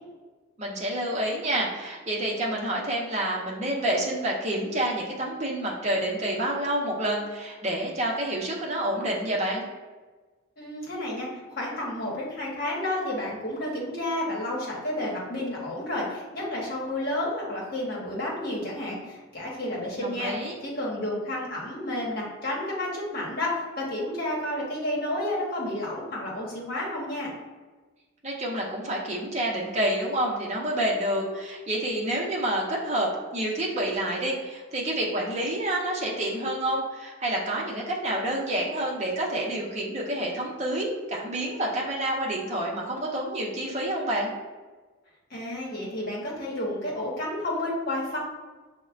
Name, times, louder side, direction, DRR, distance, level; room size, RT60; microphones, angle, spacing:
voice 1, 0.6-9.6 20.0-20.6 28.2-44.3, right 1 dB, 35° right, -2 dB, 0.7 m, -28 dB
voice 2, 10.6-20.3 20.6-27.3 45.3-48.2, left 1 dB, 45° left, -4 dB, 1.0 m, -31 dB
6.2 x 2.1 x 2.4 m, 1.3 s
head